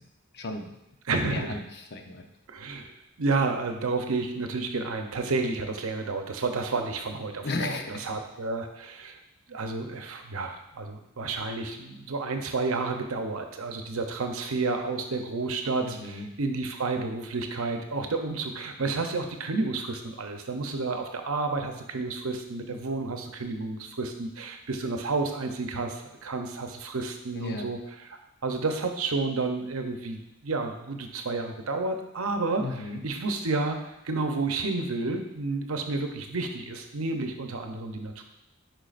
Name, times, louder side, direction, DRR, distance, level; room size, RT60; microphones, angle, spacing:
voice 1, 0.3-0.7 1.1-2.2 7.4-8.0 15.8-16.3 27.3-27.7 32.6-33.0, left 2 dB, 50° left, 4 dB, 0.7 m, -35 dB
voice 2, 1.1-1.6 2.5-2.9 3.2-9.2 9.5-27.8 28.4-32.7 33.0-33.8 34.0-38.2, right 3 dB, 75° right, 5 dB, 0.7 m, -30 dB
9.0 x 4.7 x 2.5 m, 0.85 s
head